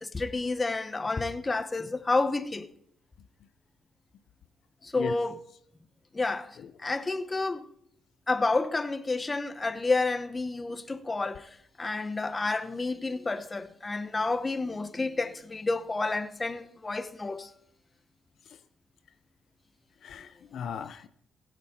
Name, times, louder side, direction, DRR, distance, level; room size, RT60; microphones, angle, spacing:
voice 1, 0.0-2.7 4.8-5.4 6.1-7.7 8.3-11.5 11.8-17.5, left 3 dB, 25° left, 0.9 m, -30 dB
voice 2, 20.0-21.1, left 8 dB, 70° left, 0.6 m, -37 dB
16.0 x 8.3 x 4.3 m
cardioid pair, 90°, 0 cm